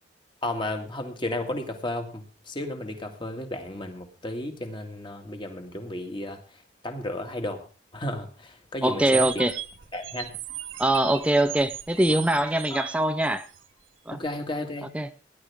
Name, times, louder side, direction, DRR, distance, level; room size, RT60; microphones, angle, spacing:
voice 1, 0.4-6.4 6.8-7.7 7.9-9.4 9.9-10.3 12.7-12.9 14.1-14.9, left 1 dB, 25° left, 2.0 m, -33 dB
voice 2, 8.8-9.6 10.8-13.5 14.1-14.2 14.9-15.1, right 1 dB, 5° right, 0.5 m, -23 dB
sound 1, 9.1-13.7, right 12 dB, 90° right, 0.8 m, -36 dB
18.0 x 11.0 x 3.6 m
head